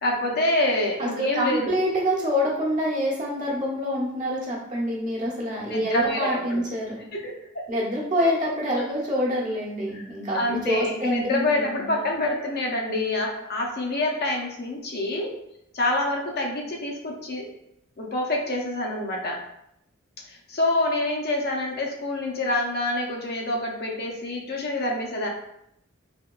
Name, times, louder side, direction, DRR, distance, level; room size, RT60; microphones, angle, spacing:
voice 1, 0.0-1.7 5.7-6.6 7.0-7.7 9.9-10.0 10.3-15.4 15.7-17.5 18.0-19.4 20.3-25.3, left 1 dB, 50° left, 0 dB, 0.6 m, -26 dB
voice 2, 1.0-7.0 7.7-11.9, equal, 40° right, -5 dB, 0.9 m, -26 dB
3.5 x 2.8 x 2.3 m, 0.79 s
head